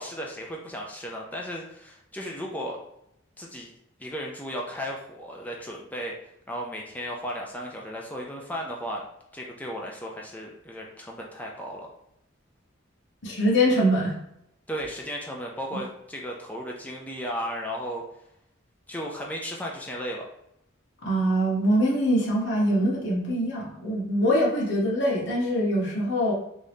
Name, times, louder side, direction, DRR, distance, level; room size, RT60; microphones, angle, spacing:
voice 1, 0.0-2.8 3.4-3.7 4.0-6.1 6.5-9.0 9.3-11.9 14.7-18.0 18.9-20.3, equal, 10° left, -1 dB, 0.4 m, -35 dB
voice 2, 13.2-14.2 21.0-26.3, equal, 60° left, -4 dB, 1.1 m, -23 dB
3.5 x 2.7 x 3.4 m, 0.79 s
head